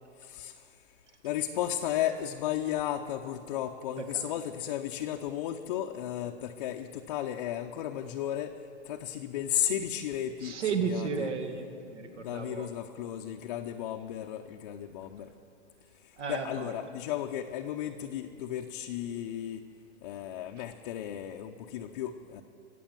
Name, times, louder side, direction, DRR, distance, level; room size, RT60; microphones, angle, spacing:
voice 1, 0.2-0.8 1.2-8.6 8.8-10.6 10.9-11.3 12.1-15.3 16.0-19.6 20.0-22.4, left 11 dB, 35° left, 3 dB, 0.6 m, -34 dB
voice 2, 10.4-12.7 16.2-16.7, right 5 dB, 75° right, 6 dB, 2.2 m, -33 dB
22.5 x 8.4 x 7.4 m, 2.5 s
hypercardioid pair, 155°, 36 cm